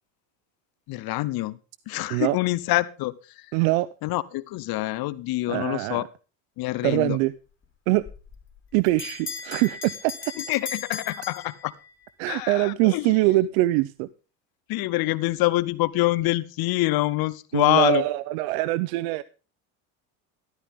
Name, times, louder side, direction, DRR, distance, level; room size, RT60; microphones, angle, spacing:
voice 1, 0.9-1.6 1.9-3.1 4.0-6.1 6.6-7.2 10.5-11.7 12.3-13.1 14.7-18.0, left 18 dB, 55° left, 18 dB, 1.0 m, -25 dB
voice 2, 3.5-3.9 5.5-6.1 6.8-7.3 7.9-8.0 8.7-10.3 12.2-14.1 17.5-19.2, right 18 dB, 75° right, 18 dB, 0.8 m, -23 dB
Bell, 8.0-12.1, left 5 dB, 30° left, 4.0 m, -37 dB
13.5 x 13.0 x 3.6 m, 0.34 s
supercardioid pair, 105°, 43 cm